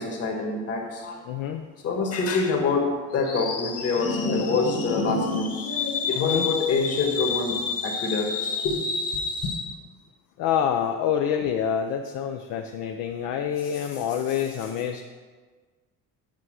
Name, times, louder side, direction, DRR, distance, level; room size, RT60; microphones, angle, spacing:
voice 1, 0.0-1.2 1.8-9.7, left 4 dB, 45° left, 2 dB, 1.8 m, -25 dB
voice 2, 1.3-1.7 6.2-6.5 10.4-15.0, left 8 dB, 65° left, 5 dB, 0.6 m, -27 dB
8.4 x 4.8 x 6.4 m, 1.4 s
cardioid pair, 130°, 34 cm